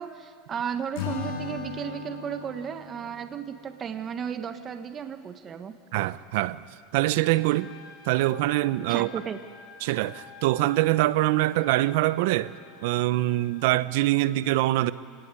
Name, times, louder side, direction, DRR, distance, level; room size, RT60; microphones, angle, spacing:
voice 1, 0.0-5.7 8.9-9.4, right 7 dB, 25° right, 1.3 m, -34 dB
Acoustic guitar / Strum, 0.9-4.2, left 6 dB, 75° left, 4.3 m, -37 dB
voice 2, 5.9-6.6 6.9-7.7 8.1-9.1 9.8-12.5 12.8-14.9, right 17 dB, 70° right, 0.8 m, -24 dB
Trumpet, 7.0-13.8, left 6 dB, 40° left, 4.1 m, -49 dB
26.5 x 18.0 x 9.7 m
supercardioid pair, 135°, 0 cm